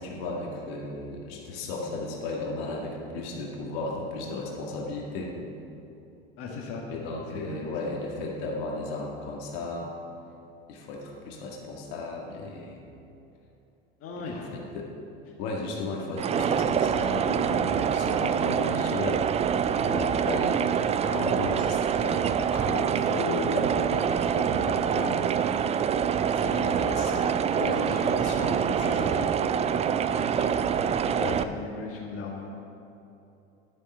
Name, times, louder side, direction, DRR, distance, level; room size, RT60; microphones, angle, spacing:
voice 1, 0.0-5.3 6.9-9.9 10.7-12.9 14.2-14.9 15.4-19.2 19.8-25.2 26.2-29.3, left 2 dB, 65° left, -1 dB, 2.0 m, -34 dB
voice 2, 6.4-6.8 7.3-7.7 14.0-14.7 26.5-26.6 27.8-28.2 30.0-32.5, left 4 dB, 45° left, -1 dB, 1.8 m, -38 dB
sound 1, 16.2-31.4, right 8 dB, 20° right, 0.3 m, -26 dB
11.5 x 7.1 x 5.6 m, 2.9 s
hypercardioid pair, 85°, 31 cm